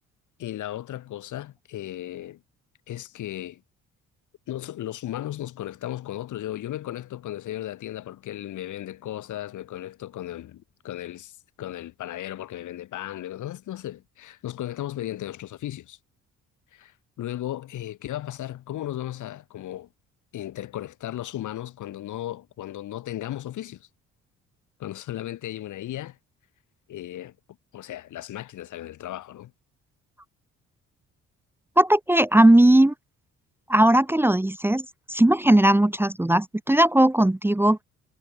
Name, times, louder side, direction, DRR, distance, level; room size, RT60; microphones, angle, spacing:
voice 1, 0.4-2.4 2.9-3.6 4.5-16.0 16.7-19.9 20.3-23.9 24.8-26.2 26.9-27.3 27.7-29.5, left 13 dB, 75° left, 3.3 m, -35 dB
voice 2, 31.8-32.9 33.7-37.8, right 1 dB, 5° right, 1.0 m, -18 dB
cardioid pair, 90°, 30 cm